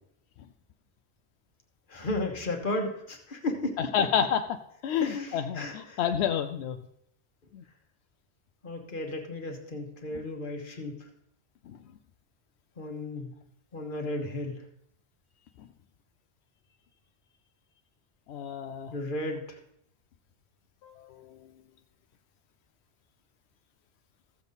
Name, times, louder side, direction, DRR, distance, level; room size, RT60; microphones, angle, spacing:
voice 1, 1.9-3.9 5.0-6.0 8.6-11.0 12.8-13.3 13.7-14.6 18.9-19.6, left 2 dB, 55° left, 3 dB, 1.5 m, -34 dB
voice 2, 3.8-4.4 4.8-6.8 7.5-7.6 18.3-18.9 20.8-21.2, left 8 dB, 90° left, 8 dB, 0.8 m, -29 dB
14.5 x 7.0 x 4.0 m, 0.72 s
omnidirectional pair, 1.1 m